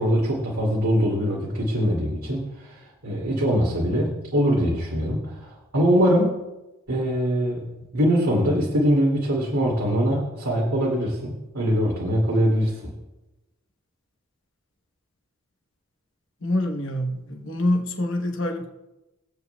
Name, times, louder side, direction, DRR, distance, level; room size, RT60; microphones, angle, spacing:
voice 1, 0.0-6.4 6.9-12.9, equal, 80° right, -4 dB, 2.5 m, -23 dB
voice 2, 16.4-18.7, left 1 dB, 55° left, 2 dB, 1.1 m, -25 dB
22.5 x 8.0 x 2.3 m, 1.0 s
head